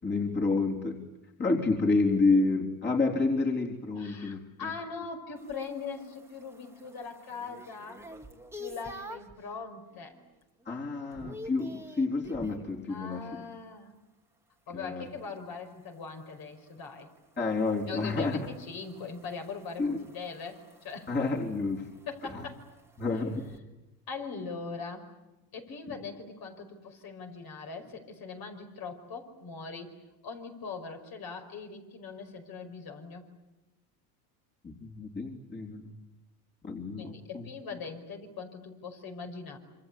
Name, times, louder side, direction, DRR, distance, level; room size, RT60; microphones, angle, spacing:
voice 1, 0.0-1.0 1.4-4.7 10.7-13.4 14.7-15.1 17.4-18.5 19.8-20.0 21.1-21.9 22.2-22.3 23.0-23.5 34.6-35.9 36.6-37.5, left 3 dB, 25° left, -1 dB, 3.8 m, -29 dB
voice 2, 4.0-8.0 8.6-10.2 12.9-14.0 14.7-17.1 17.9-21.1 22.1-22.6 24.1-25.1 25.5-29.9 30.2-33.3 37.0-39.6, left 5 dB, 50° left, 4 dB, 5.3 m, -41 dB
sound 1, 5.3-9.4 9.9-10.3 10.6-12.7 15.2-23.6, equal, 5° right, 2.0 m, -49 dB
27.0 x 25.0 x 8.4 m, 1.0 s
supercardioid pair, 100°, 45 cm